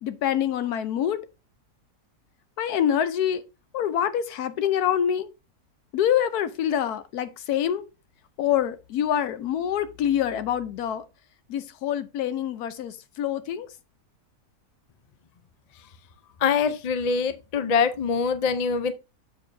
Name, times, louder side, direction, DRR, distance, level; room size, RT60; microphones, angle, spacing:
voice 1, 0.0-1.2 2.6-3.4 3.7-5.3 5.9-7.8 8.4-11.0 11.5-13.7, left 9 dB, 85° left, 1.2 m, -26 dB
voice 2, 16.4-18.9, left 5 dB, 55° left, 0.4 m, -24 dB
7.3 x 6.7 x 2.6 m
omnidirectional pair, 1.6 m